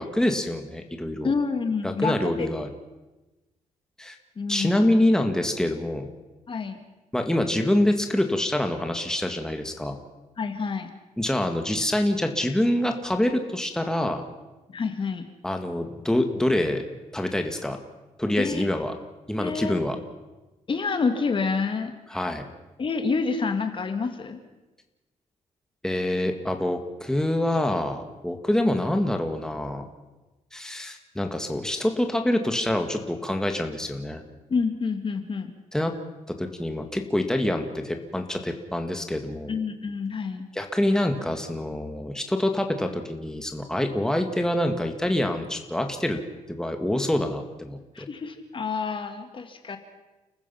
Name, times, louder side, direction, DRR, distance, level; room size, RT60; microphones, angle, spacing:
voice 1, 0.0-1.3 1.8-2.7 4.0-4.2 4.5-6.1 7.1-10.0 11.2-14.2 15.4-16.8 17.1-17.8 18.2-18.9 19.3-20.0 22.1-22.4 25.8-29.8 30.5-34.2 35.7-35.9 36.3-39.5 40.5-46.2 46.5-48.1, left 1 dB, 5° left, 5 dB, 2.0 m, -26 dB
voice 2, 1.2-2.5 4.4-4.8 6.5-6.8 10.4-10.9 14.7-15.3 18.4-18.7 19.4-19.7 20.7-21.9 22.8-24.4 34.5-35.5 39.5-40.5 47.9-49.8, left 4 dB, 40° left, 7 dB, 2.0 m, -28 dB
30.0 x 15.0 x 5.8 m, 1.1 s
cardioid pair, 100°, 13 cm